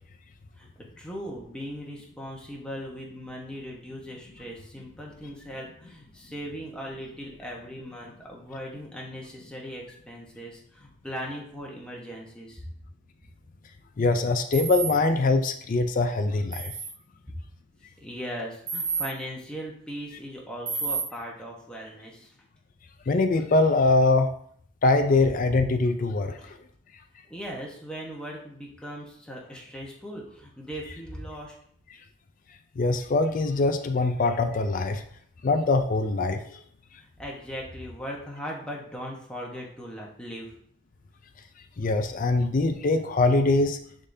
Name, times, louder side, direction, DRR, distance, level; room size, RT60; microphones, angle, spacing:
voice 1, 1.0-12.6 17.3-17.4 18.0-22.3 26.4-26.5 27.2-31.6 37.0-40.5, equal, 5° left, -3 dB, 1.0 m, -39 dB
voice 2, 14.0-16.7 23.1-24.3 24.8-26.5 32.8-35.0 35.4-36.4 41.8-43.8, left 3 dB, 40° left, 7 dB, 0.4 m, -23 dB
sound 1, 14.5-14.9 16.5-16.9 18.7-19.1 20.7-21.0, right 5 dB, 75° right, 1.5 m, -29 dB
9.8 x 3.7 x 2.7 m, 0.65 s
head